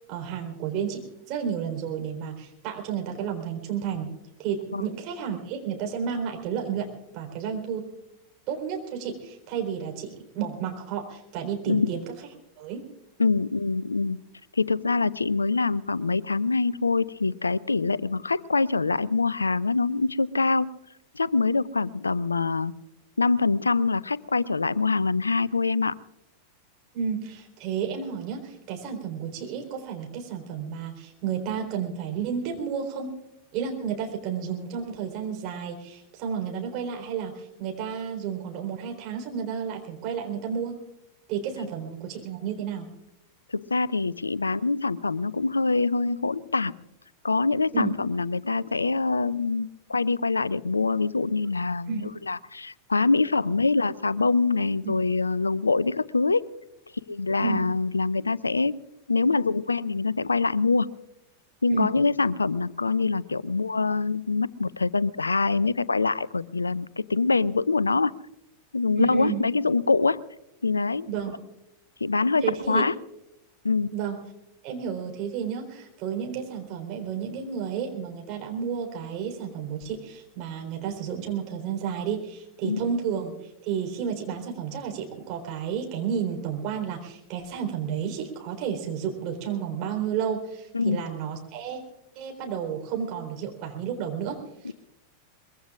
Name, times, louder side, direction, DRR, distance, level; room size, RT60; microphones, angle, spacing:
voice 1, 0.1-4.1 4.4-7.8 8.5-12.0 12.6-12.8 26.9-33.1 33.5-40.8 41.3-42.9 47.7-47.9 51.9-52.1 54.8-54.9 57.4-57.6 61.7-61.9 69.0-69.4 71.1-71.3 72.4-72.8 73.9-74.2 74.6-91.8 92.2-94.4 94.6-94.7, right 7 dB, 40° right, 2 dB, 3.8 m, -31 dB
voice 2, 13.2-14.2 14.5-20.7 21.1-22.7 23.2-25.9 43.5-46.7 47.2-56.4 57.1-58.8 59.1-60.9 61.6-68.1 68.7-70.2 70.6-71.1 72.0-72.9 73.6-73.9 82.6-82.8 90.7-91.0 94.6-94.7, left 3 dB, 80° left, 21 dB, 0.4 m, -24 dB
23.0 x 22.0 x 2.4 m, 0.87 s
figure-of-eight pair, 90°, 0 cm